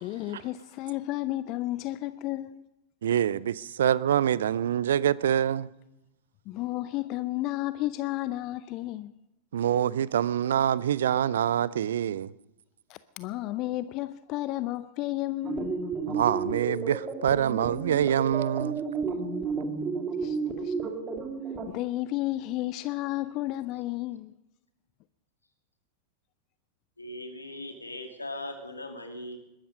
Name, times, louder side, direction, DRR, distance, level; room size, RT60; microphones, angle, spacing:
voice 1, 0.0-2.6 6.5-9.1 12.9-15.8 20.2-20.4 20.6-20.9 21.7-24.3, left 16 dB, 40° left, 0.6 m, -32 dB
voice 2, 3.0-5.7 9.5-12.3 16.1-18.8, right 10 dB, 60° right, 0.5 m, -25 dB
sound 1, 15.4-21.7, right 4 dB, 25° right, 2.5 m, -32 dB
voice 3, 27.0-29.4, left 1 dB, 80° left, 2.6 m, -39 dB
21.5 x 13.0 x 5.3 m
figure-of-eight pair, 90°, 0 cm